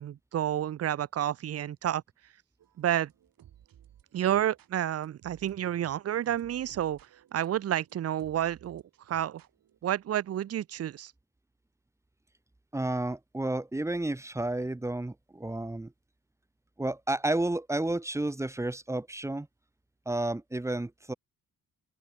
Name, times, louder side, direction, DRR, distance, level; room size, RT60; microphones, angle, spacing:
voice 1, 0.0-2.0 2.8-3.1 4.1-7.0 7.3-9.4 9.8-11.1, right 11 dB, 45° right, 0.7 m, -30 dB
sound 1, 2.6-9.8, right 11 dB, 80° right, 6.9 m, -58 dB
voice 2, 12.7-15.9 16.8-19.5 20.0-21.1, right 2 dB, 10° right, 1.4 m, -31 dB
wide cardioid pair, 170°, 34 cm